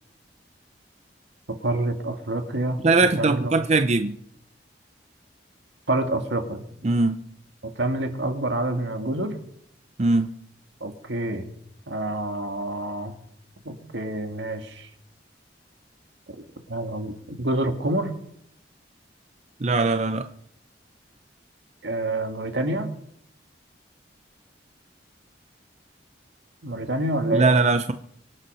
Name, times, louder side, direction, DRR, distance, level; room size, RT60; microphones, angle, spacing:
voice 1, 1.6-2.8 3.2-3.5 5.9-6.6 7.6-9.3 10.8-11.5 11.9-13.2 13.6-14.9 16.7-18.1 21.8-22.9 26.6-27.5, right 1 dB, 75° right, 6 dB, 2.0 m, -27 dB
voice 2, 2.8-4.2 6.8-7.2 10.0-10.3 19.6-20.3 27.3-27.9, right 3 dB, 40° right, 9 dB, 0.6 m, -20 dB
24.5 x 8.5 x 5.6 m, 0.71 s
head